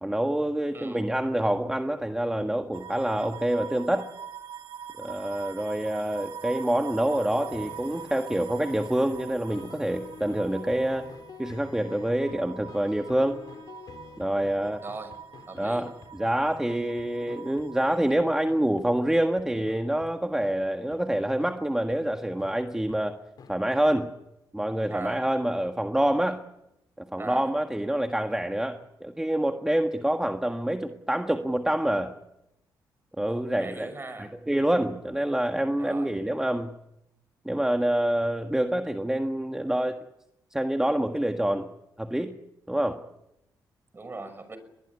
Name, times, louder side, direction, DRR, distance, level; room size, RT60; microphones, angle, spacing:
voice 1, 0.0-4.1 5.0-11.1 11.4-13.4 14.2-14.8 15.6-23.2 23.5-24.1 24.5-26.4 27.0-32.1 33.2-33.9 34.2-36.7 37.4-40.0 40.5-41.7 42.0-42.3 42.7-43.0, right 1 dB, 5° right, 5 dB, 1.6 m, -26 dB
voice 2, 0.7-1.0 14.8-15.1 15.5-15.9 24.9-25.3 27.2-27.5 33.2-34.3 35.8-36.1 43.9-44.6, right 3 dB, 30° right, 11 dB, 5.9 m, -39 dB
sound 1, 2.7-18.2, right 8 dB, 75° right, 2.3 m, -44 dB
sound 2, 7.0-20.1 20.4-20.5 20.9-21.0 21.4-21.5 21.9-22.0 22.4-22.5 22.9-23.0 23.4-23.5 23.9-24.0, left 5 dB, 60° left, 3.9 m, -47 dB
22.5 x 20.5 x 9.8 m, 0.86 s
cardioid pair, 90°, 8 cm